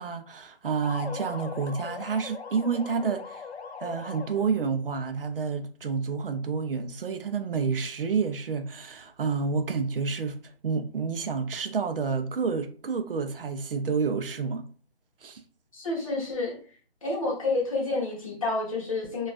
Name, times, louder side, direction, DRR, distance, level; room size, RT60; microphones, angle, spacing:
voice 1, 0.0-3.4 3.8-10.4 10.6-14.6 15.2-15.4, right 5 dB, 60° right, 0.4 m, -29 dB
sound 1, 0.8-4.7, left 5 dB, 90° left, 0.5 m, -40 dB
voice 2, 15.7-16.5 17.0-19.3, left 2 dB, 35° left, 0.8 m, -29 dB
2.3 x 2.3 x 2.4 m
hypercardioid pair, 175°, 32 cm